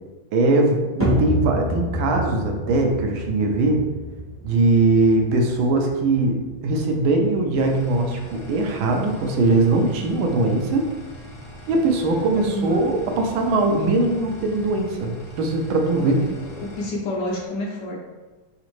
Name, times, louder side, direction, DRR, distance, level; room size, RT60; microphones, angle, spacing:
voice 1, 0.3-3.9 4.4-10.9 11.7-16.2, right 2 dB, 75° right, 2 dB, 1.4 m, -21 dB
sound 1, 1.0-17.4, equal, 20° right, 0.4 m, -34 dB
sound 2, 7.5-16.9, equal, 85° left, 0.4 m, -41 dB
voice 2, 12.1-12.8 16.0-18.0, left 1 dB, 70° left, -2 dB, 1.1 m, -30 dB
4.2 x 3.7 x 3.1 m, 1.2 s
omnidirectional pair, 2.3 m